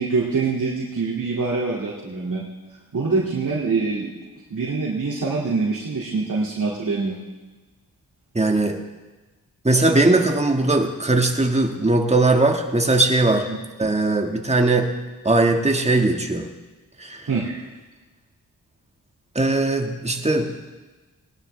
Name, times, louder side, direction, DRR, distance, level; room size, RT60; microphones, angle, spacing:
voice 1, 0.0-2.5 2.9-4.1 4.5-7.2 13.5-13.6 17.3-17.6, right 4 dB, 60° right, -5 dB, 2.3 m, -24 dB
voice 2, 8.3-8.8 9.6-13.5 13.8-14.9 15.2-16.5 17.0-17.3 19.3-20.5, right 2 dB, 20° right, 3 dB, 1.6 m, -19 dB
19.5 x 11.5 x 3.3 m, 1.2 s
cardioid pair, 60°, 36 cm